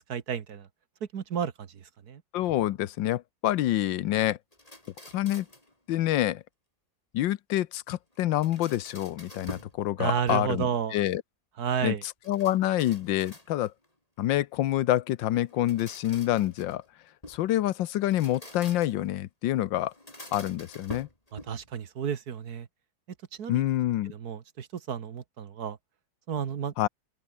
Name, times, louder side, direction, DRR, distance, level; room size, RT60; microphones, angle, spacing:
voice 1, 0.1-0.7 1.1-2.2 10.0-11.0 11.6-12.0 21.3-22.7 23.4-23.6 24.1-25.8 26.3-26.7, right 7 dB, 60° right, 1.8 m, -32 dB
voice 2, 2.3-4.4 5.1-5.5 5.9-6.4 7.1-11.2 11.8-11.9 12.3-13.7 14.2-16.8 17.3-19.9 20.3-21.1 23.5-24.1 26.8-26.9, left 13 dB, 85° left, 1.5 m, -27 dB
sound 1, 4.5-5.7 8.1-9.8 10.1-10.8 12.2-13.8 15.4-17.5 18.0-19.1 19.9-21.7, left 1 dB, 20° left, 4.7 m, -46 dB
open air
omnidirectional pair, 2.0 m